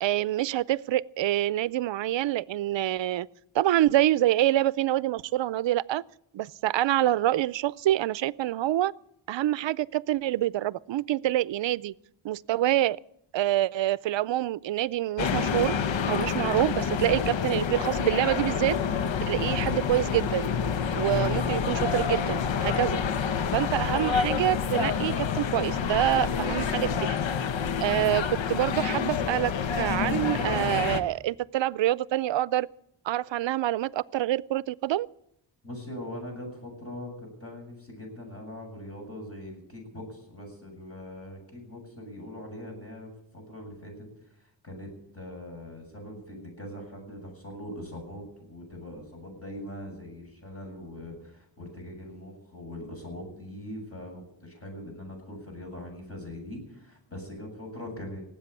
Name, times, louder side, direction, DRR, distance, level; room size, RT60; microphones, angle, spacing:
voice 1, 0.0-3.3 3.5-6.0 6.3-8.9 9.3-11.9 12.2-13.0 13.3-15.8 16.1-18.8 19.3-20.5 20.9-23.0 23.5-27.2 27.8-29.5 29.8-32.7 33.1-35.1, right 14 dB, 80° right, 0.6 m, -26 dB
sound 1, 15.2-31.0, left 6 dB, 90° left, 1.0 m, -28 dB
voice 2, 35.6-58.2, left 1 dB, 30° left, 7.7 m, -41 dB
18.5 x 8.4 x 8.3 m
wide cardioid pair, 95°, 44 cm